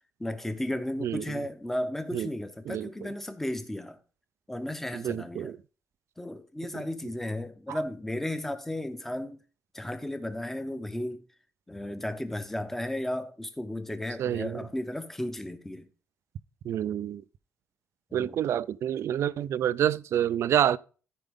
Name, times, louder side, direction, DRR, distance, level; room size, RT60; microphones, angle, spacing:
voice 1, 0.2-4.0 4.5-5.5 6.2-9.4 9.7-11.2 11.7-15.9 18.1-18.4, left 1 dB, 5° left, 0.7 m, -34 dB
voice 2, 1.0-1.4 2.1-2.3 2.7-3.1 4.9-5.6 6.7-6.8 7.7-7.8 14.2-14.7 16.7-17.2 18.1-20.8, right 10 dB, 60° right, 0.4 m, -28 dB
14.0 x 5.0 x 3.5 m
cardioid pair, 170°, 5 cm